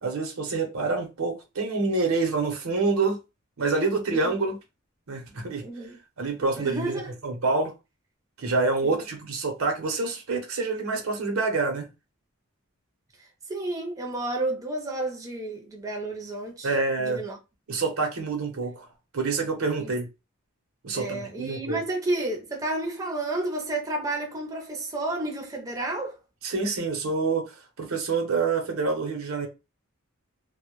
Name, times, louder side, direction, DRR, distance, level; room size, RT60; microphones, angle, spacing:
voice 1, 0.0-3.2 3.6-4.6 5.1-5.6 6.2-6.9 7.2-7.7 8.4-11.9 16.6-17.2 17.7-18.9 19.1-20.1 20.8-21.8 26.4-29.5, right 3 dB, 85° right, 0.7 m, -27 dB
voice 2, 5.6-6.0 6.6-7.1 8.8-9.0 13.5-16.7 17.0-17.4 19.8-19.9 20.9-26.2, right 2 dB, 15° right, 0.5 m, -31 dB
2.1 x 2.0 x 2.9 m
head